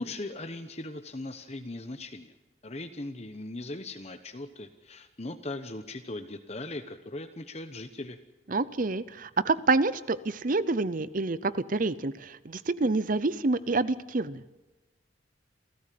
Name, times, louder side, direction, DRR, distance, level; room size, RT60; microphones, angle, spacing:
voice 1, 0.0-2.3 2.6-8.2, left 2 dB, 35° left, 7 dB, 1.0 m, -39 dB
voice 2, 8.5-14.4, right 3 dB, 45° right, 16 dB, 0.6 m, -27 dB
29.0 x 14.0 x 7.6 m, 1.2 s
head